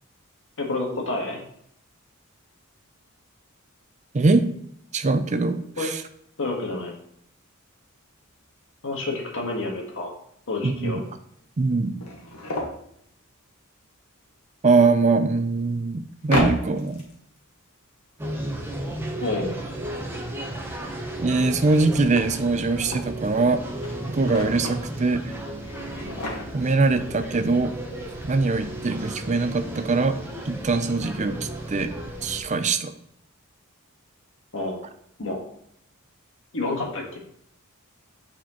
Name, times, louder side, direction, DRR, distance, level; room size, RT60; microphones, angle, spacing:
voice 1, 0.6-1.4 5.8-5.9 6.4-6.9 8.8-10.1 10.5-11.0 19.2-19.5 34.5-34.8 35.2-35.4 36.5-37.2, left 2 dB, 65° left, 0 dB, 1.5 m, -29 dB
voice 2, 4.1-4.5 4.9-6.0 10.6-11.0 11.6-11.9 14.6-17.0 21.2-23.6 24.1-25.3 26.5-27.7 28.2-30.2 30.5-31.9 32.2-32.9, right 3 dB, 35° right, 9 dB, 0.5 m, -22 dB
sound 1, 8.5-8.6 8.9-9.0 9.5-9.6 10.7-10.8 11.0-11.1 11.7-12.8 14.9-15.0 16.2-17.4 21.3-23.1 23.5-24.9 25.5-26.8 27.2-27.3 27.5-27.7, left 1 dB, 85° left, 1.5 m, -32 dB
sound 2, 18.2-32.4, right 1 dB, 10° right, 0.8 m, -34 dB
8.2 x 4.3 x 3.0 m, 0.69 s
head